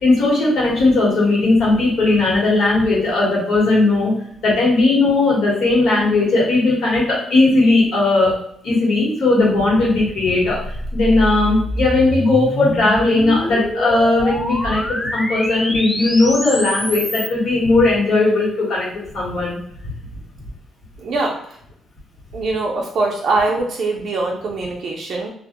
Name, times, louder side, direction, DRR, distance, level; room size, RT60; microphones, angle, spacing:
voice 1, 0.0-4.1 4.4-8.3 8.6-10.6 10.9-19.6, left 2 dB, 70° left, -5 dB, 1.3 m, -17 dB
sound 1, 10.6-17.3, left 1 dB, 10° left, 0.3 m, -26 dB
voice 2, 21.0-21.6 22.3-25.3, right 3 dB, 60° right, -1 dB, 0.4 m, -22 dB
2.3 x 2.1 x 2.9 m, 0.69 s
cardioid pair, 90°, 0 cm